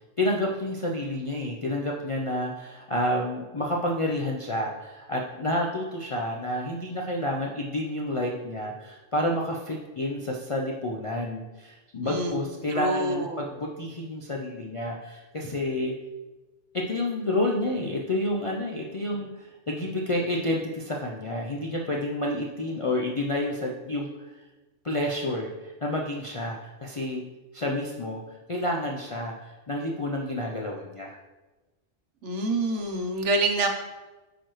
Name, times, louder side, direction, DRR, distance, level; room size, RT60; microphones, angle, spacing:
voice 1, 0.2-15.9 16.7-24.3 24.8-27.2 27.5-31.2, left 1 dB, 45° left, -2 dB, 0.4 m, -29 dB
voice 2, 12.0-12.4 12.7-13.4 32.2-33.7, right 2 dB, 70° right, 4 dB, 1.2 m, -27 dB
9.1 x 4.5 x 3.1 m, 1.2 s
omnidirectional pair, 1.3 m